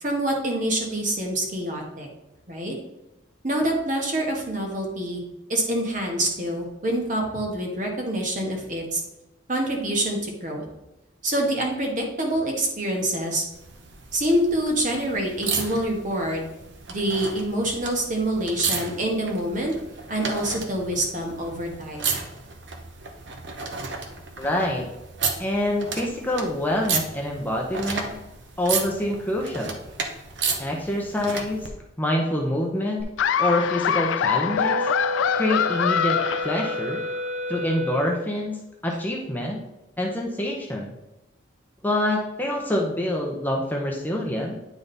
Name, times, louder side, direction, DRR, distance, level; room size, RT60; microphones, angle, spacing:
voice 1, 0.0-2.1 2.5-2.7 3.4-5.2 5.5-9.0 9.5-10.6 11.2-13.4 14.1-16.4 16.9-19.7 20.1-22.0, right 1 dB, 45° right, 1 dB, 1.5 m, -26 dB
sound 1, 13.5-31.7 33.0-33.1, right 5 dB, 65° right, 0.9 m, -33 dB
voice 2, 24.4-24.8 25.4-28.1 28.6-29.7 30.6-31.6 32.0-33.1 33.4-34.8 35.3-36.2 36.4-37.0 37.5-39.6 40.0-40.9 41.8-44.6, left 1 dB, 10° left, -1 dB, 0.7 m, -26 dB
Laughter, 33.2-37.2, left 8 dB, 80° left, 0.3 m, -24 dB
Wind instrument woodwind instrument, 34.5-38.3, equal, 90° right, 2.2 m, -30 dB
9.3 x 3.8 x 4.0 m, 0.95 s
head